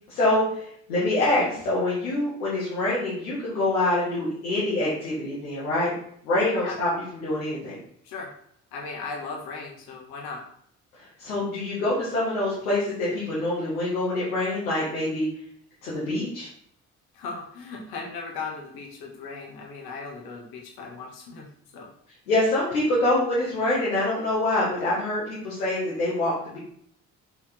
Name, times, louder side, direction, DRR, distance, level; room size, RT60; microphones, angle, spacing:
voice 1, 0.1-5.9 6.2-6.9 7.2-7.8 11.0-15.3 15.8-16.5 22.3-26.6, left 1 dB, 80° left, -8 dB, 1.8 m, -25 dB
voice 2, 8.7-10.4 17.1-21.4 21.7-21.9, left 4 dB, 60° left, 0 dB, 1.7 m, -37 dB
5.7 x 4.5 x 4.4 m, 0.65 s
figure-of-eight pair, 45°, 42 cm